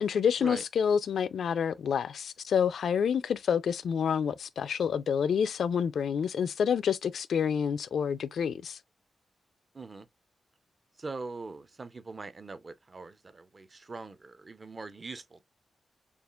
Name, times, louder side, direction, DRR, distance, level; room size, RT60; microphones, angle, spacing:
voice 1, 0.0-8.8, left 7 dB, 75° left, 0.4 m, -28 dB
voice 2, 9.7-10.1 11.0-15.4, right 3 dB, 30° right, 0.6 m, -42 dB
6.9 x 2.4 x 2.3 m
wide cardioid pair, 180°, 0 cm